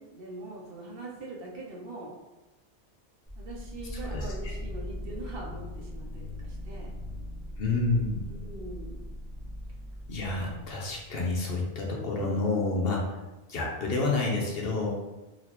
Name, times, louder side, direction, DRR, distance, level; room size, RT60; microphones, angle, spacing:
voice 1, 0.0-2.1 3.4-6.9 8.3-9.2, right 2 dB, 60° right, -2 dB, 0.8 m, -42 dB
sound 1, 3.3-11.1, left 1 dB, 5° right, 0.7 m, -40 dB
voice 2, 7.6-8.3 10.1-13.1 13.5-14.9, left 3 dB, 60° left, -2 dB, 0.9 m, -29 dB
4.0 x 2.4 x 2.9 m, 1.1 s
omnidirectional pair, 1.2 m